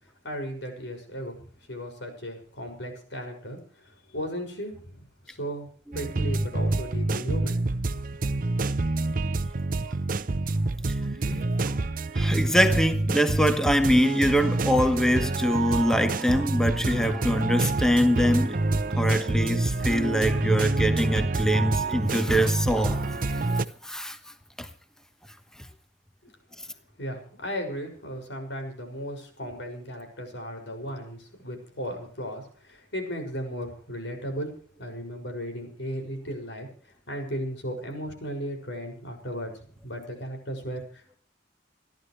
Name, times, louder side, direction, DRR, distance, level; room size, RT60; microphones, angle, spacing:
voice 1, 0.2-5.7 5.9-7.6 27.0-34.5 34.8-36.7 37.1-41.2, equal, 85° left, 6.4 m, -36 dB
sound 1, 5.9-23.7, right 2 dB, 50° right, 0.8 m, -27 dB
voice 2, 12.1-18.6 18.9-23.5 23.8-24.2 24.6-24.7, equal, 5° left, 1.2 m, -24 dB
30.0 x 12.0 x 3.3 m
head